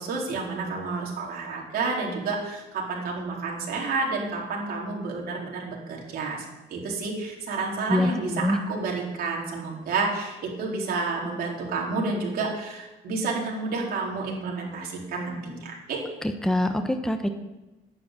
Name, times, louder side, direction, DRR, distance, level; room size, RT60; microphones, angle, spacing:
voice 1, 0.0-6.4 6.7-16.0, right 3 dB, 65° right, -2 dB, 4.2 m, -30 dB
voice 2, 7.9-8.6 16.4-17.3, left 1 dB, 5° left, 6 dB, 1.0 m, -24 dB
10.5 x 9.4 x 8.3 m, 1.1 s
cardioid pair, 110°, 17 cm